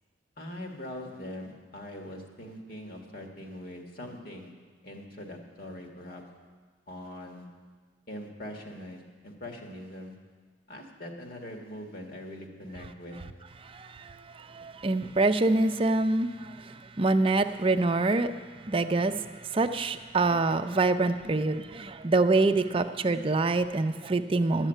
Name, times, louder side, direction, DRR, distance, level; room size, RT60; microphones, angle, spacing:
voice 1, 0.4-4.5 4.8-6.3 6.9-7.5 8.1-10.2 10.7-13.2, left 1 dB, 55° left, 2 dB, 1.8 m, -42 dB
voice 2, 13.7-14.1 14.5-16.5 17.0-18.3 18.7-19.2 19.5-24.7, right 2 dB, 30° right, 8 dB, 0.5 m, -25 dB
12.0 x 7.4 x 8.9 m, 1.5 s
head